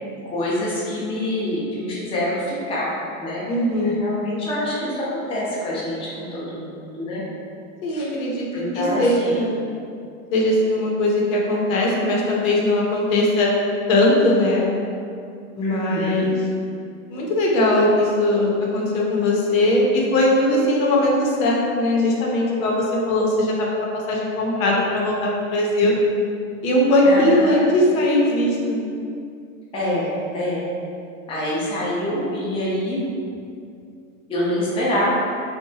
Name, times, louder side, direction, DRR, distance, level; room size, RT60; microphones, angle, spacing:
voice 1, 0.3-2.9 3.2-3.5 3.8-7.2 7.9-8.1 8.5-9.4 15.6-16.3 27.1-27.6 29.7-30.7 31.3-33.0 34.3-35.1, left 1 dB, 15° left, -7 dB, 0.5 m, -26 dB
voice 2, 3.5-4.0 7.8-9.7 10.3-13.5 13.9-14.7 15.6-16.4 17.1-26.0 26.6-28.8, left 1 dB, 75° left, -3 dB, 0.7 m, -20 dB
2.7 x 2.2 x 2.7 m, 2.4 s
hypercardioid pair, 115°, 42 cm